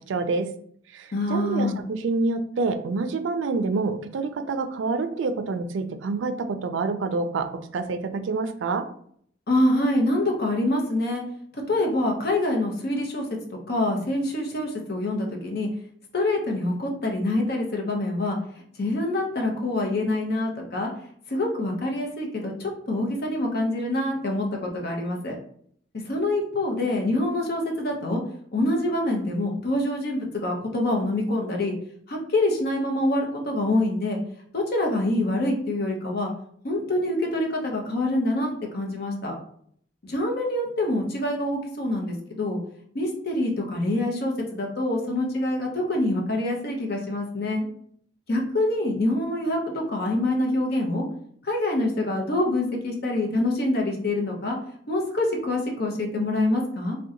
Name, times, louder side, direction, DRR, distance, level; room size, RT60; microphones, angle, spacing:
voice 1, 0.1-0.5 0.9-7.5 7.7-8.8, right 3 dB, 90° right, 9 dB, 0.4 m, -27 dB
voice 2, 1.1-1.8 9.5-11.2 11.5-13.3 13.7-15.7 16.1-18.4 18.8-20.9 21.3-25.4 26.1-28.2 28.5-31.7 32.1-34.2 34.5-36.3 36.6-39.4 40.0-42.6 42.9-47.7 48.3-51.0 51.4-54.6 54.9-57.0, left 1 dB, 60° left, 1 dB, 0.7 m, -25 dB
2.7 x 2.2 x 3.7 m, 0.63 s
head